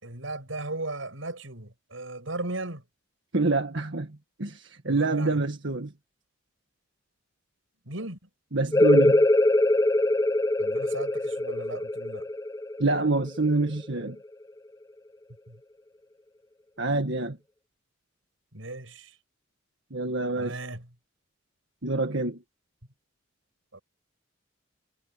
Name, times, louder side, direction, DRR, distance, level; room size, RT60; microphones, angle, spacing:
voice 1, 0.0-2.8 4.9-5.4 7.8-8.2 10.6-12.3 15.5-15.6 18.5-19.1 20.3-20.9 23.7-23.8, right 2 dB, 85° right, 6.5 m, -36 dB
voice 2, 3.3-5.9 8.5-9.2 12.8-14.2 16.8-17.4 19.9-20.6 21.8-22.4, right 3 dB, 65° right, 1.7 m, -26 dB
sound 1, 8.7-14.1, left 1 dB, 15° left, 0.7 m, -23 dB
head